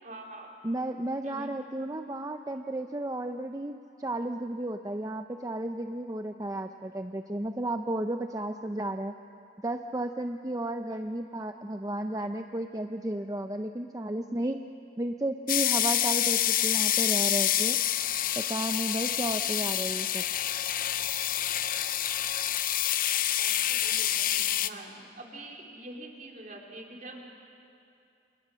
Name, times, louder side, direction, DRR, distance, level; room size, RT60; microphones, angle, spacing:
voice 1, 0.0-0.5 1.2-1.5 10.9-11.0 23.1-27.6, right 1 dB, 45° right, 0 dB, 3.6 m, -45 dB
voice 2, 0.6-9.1 9.6-14.6 15.0-17.8 18.5-20.2, right 1 dB, 20° right, 6 dB, 0.6 m, -33 dB
sound 1, 15.5-24.7, left 12 dB, 50° left, 0.7 m, -27 dB
29.0 x 28.5 x 6.3 m, 2.7 s
head